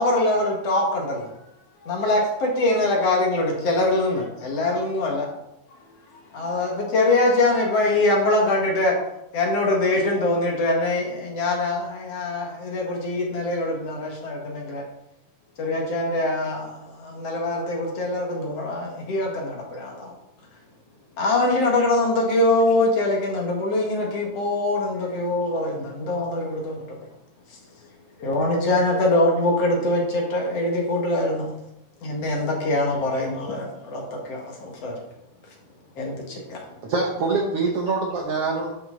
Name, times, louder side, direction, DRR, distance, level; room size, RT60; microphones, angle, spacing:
voice 1, 0.0-1.3 1.9-5.3 6.3-8.9 9.3-14.8 15.6-20.1 21.2-27.0 28.2-31.5 32.0-33.7 33.9-34.9 36.0-36.6, left 2 dB, 50° left, 0 dB, 2.6 m, -23 dB
voice 2, 0.9-2.0 4.0-4.1 4.4-4.6 5.7-6.7 7.5-7.6 25.0-25.4 25.8-25.9 27.6-28.3 28.6-28.7 32.0-32.4 33.0-33.1 36.7-36.8, left 3 dB, 70° left, 0 dB, 3.1 m, -51 dB
voice 3, 36.8-38.7, right 3 dB, 65° right, 0 dB, 1.6 m, -24 dB
12.0 x 6.0 x 3.9 m, 0.83 s
omnidirectional pair, 3.8 m